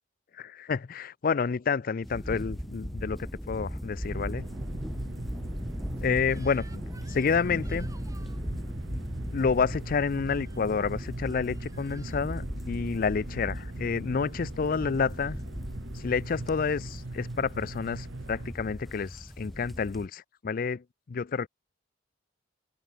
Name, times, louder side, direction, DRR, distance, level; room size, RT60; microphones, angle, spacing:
voice 1, 0.3-4.5 6.0-6.8 7.1-7.9 9.3-15.4 15.9-21.5, left 5 dB, 45° left, 0.4 m, -29 dB
sound 1, 2.0-20.1, equal, ahead, 0.8 m, -38 dB
sound 2, 4.1-18.5, right 2 dB, 75° right, 1.1 m, -41 dB
Crying sobbing / Screech, 6.2-8.4 10.3-10.6 11.3-12.3, right 3 dB, 20° right, 6.2 m, -55 dB
open air
head